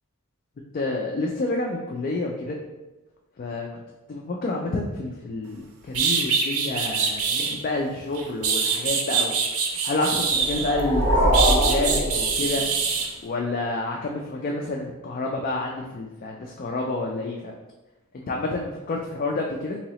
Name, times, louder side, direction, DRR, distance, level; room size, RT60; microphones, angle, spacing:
voice 1, 0.7-2.6 3.4-3.7 4.1-9.3 9.7-12.6 13.2-17.5 18.1-19.8, left 2 dB, 40° left, 0 dB, 0.3 m, -29 dB
sound 1, 5.5-5.6 5.9-7.6 8.1-10.8 11.3-13.1, right 5 dB, 80° right, 0.5 m, -24 dB
sound 2, 10.3-12.9, equal, 50° right, 1.5 m, -23 dB
3.8 x 2.9 x 2.9 m, 1.1 s
head